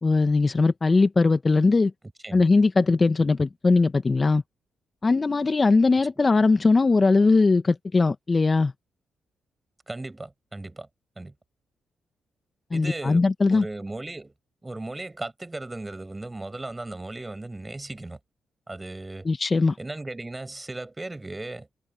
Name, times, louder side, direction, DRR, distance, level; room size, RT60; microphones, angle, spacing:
voice 1, 0.0-1.9 2.3-4.4 5.0-8.7 12.7-13.6 19.2-19.7, left 3 dB, 35° left, 1.6 m, -20 dB
voice 2, 9.9-10.9 11.2-11.3 12.7-14.3 14.6-18.2 18.7-19.3 19.8-21.7, right 2 dB, 20° right, 7.0 m, -36 dB
supercardioid pair, 45°, 0 cm